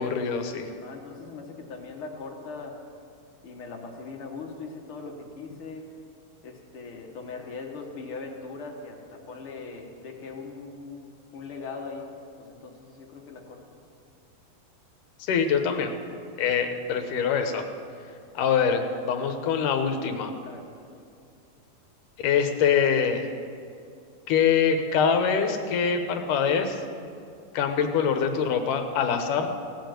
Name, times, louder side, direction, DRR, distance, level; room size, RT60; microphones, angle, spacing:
voice 1, 0.0-0.7 15.2-15.9 16.4-17.6 18.3-20.3 22.2-23.3 24.3-26.8 27.5-29.5, left 6 dB, 75° left, 6 dB, 2.6 m, -24 dB
voice 2, 0.7-2.7 3.4-5.8 6.4-11.0 11.3-12.1 12.4-13.6 20.4-20.7, left 4 dB, 50° left, 1 dB, 1.9 m, -40 dB
17.5 x 7.3 x 9.3 m, 2.4 s
omnidirectional pair, 3.9 m